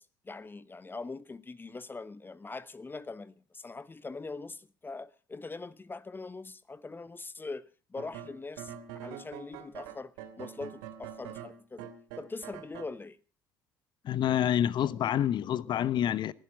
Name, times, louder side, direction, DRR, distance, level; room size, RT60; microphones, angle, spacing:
voice 1, 0.0-8.7 9.0-11.9 12.2-13.2, left 3 dB, 20° left, 1.0 m, -42 dB
sound 1, 8.0-12.9, right 9 dB, 75° right, 2.7 m, -44 dB
voice 2, 14.0-16.3, left 10 dB, 55° left, 1.0 m, -27 dB
20.0 x 12.0 x 6.2 m
hypercardioid pair, 60°, 9 cm